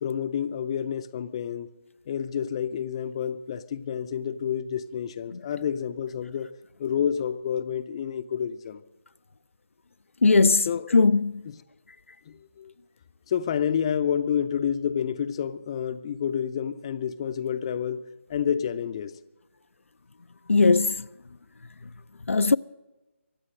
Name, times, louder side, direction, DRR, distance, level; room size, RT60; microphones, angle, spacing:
voice 1, 0.0-1.7 2.1-6.5 6.8-8.8 10.7-10.9 11.5-11.6 12.3-12.7 13.3-19.1, left 8 dB, 25° left, 0.5 m, -29 dB
voice 2, 10.2-11.4 20.5-21.1 22.3-22.6, left 4 dB, 75° left, 0.4 m, -19 dB
23.5 x 8.2 x 6.4 m
figure-of-eight pair, 160°, 7 cm